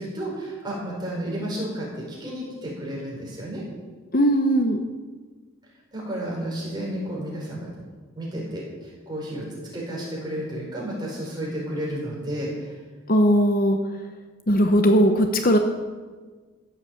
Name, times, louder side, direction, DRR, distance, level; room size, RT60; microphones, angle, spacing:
voice 1, 0.0-3.6 5.9-7.7 8.1-9.4 9.7-12.8, right 1 dB, 20° right, -4 dB, 4.8 m, -32 dB
voice 2, 4.1-4.8 13.1-13.8 14.5-15.6, equal, 40° left, 5 dB, 0.9 m, -18 dB
14.5 x 8.2 x 7.7 m, 1.4 s
head